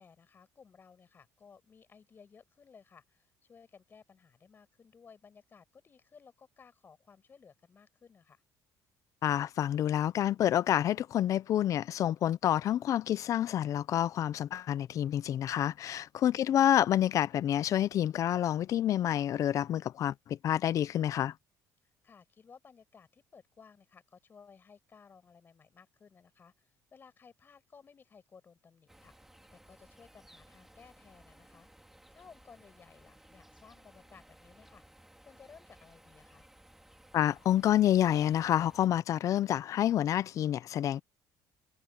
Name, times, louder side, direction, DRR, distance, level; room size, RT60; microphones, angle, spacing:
voice 1, 0.0-8.4 16.3-16.7 21.8-29.2 29.5-36.5, left 6 dB, 30° left, 7.4 m, -58 dB
voice 2, 9.2-21.3 37.1-41.0, left 11 dB, 50° left, 0.6 m, -28 dB
sound 1, 28.9-38.9, right 1 dB, 5° right, 2.9 m, -59 dB
cardioid pair, 135°, 7 cm